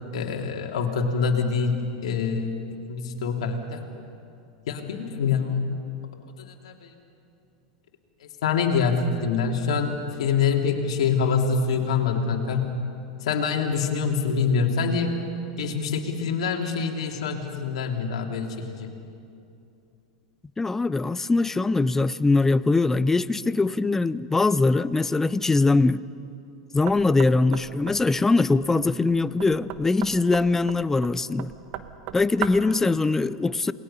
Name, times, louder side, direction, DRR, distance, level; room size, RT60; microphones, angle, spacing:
voice 1, 0.1-1.8 2.0-2.6 2.8-3.9 4.7-5.8 6.6-6.9 8.4-12.7 13.2-15.3 15.6-18.9, left 5 dB, 70° left, 1 dB, 2.9 m, -25 dB
voice 2, 20.6-26.0 26.7-31.5 32.1-33.7, left 3 dB, 10° left, 17 dB, 0.6 m, -22 dB
Knock, 26.9-32.8, right 11 dB, 50° right, 1.3 m, -38 dB
28.5 x 20.5 x 5.6 m, 2.6 s
hypercardioid pair, 105°, 3 cm